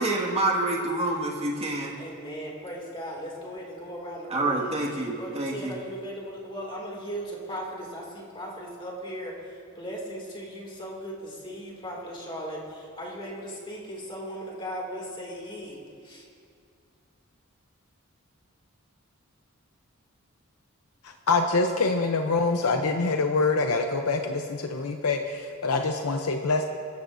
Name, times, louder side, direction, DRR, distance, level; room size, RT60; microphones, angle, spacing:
voice 1, 0.0-1.9 4.3-5.8, right 2 dB, 25° right, -3 dB, 2.0 m, -27 dB
voice 2, 2.0-4.8 5.1-16.3, equal, 25° left, -2 dB, 2.5 m, -37 dB
voice 3, 21.3-26.6, left 3 dB, 90° left, 4 dB, 0.7 m, -25 dB
23.0 x 14.0 x 2.7 m, 2.3 s
head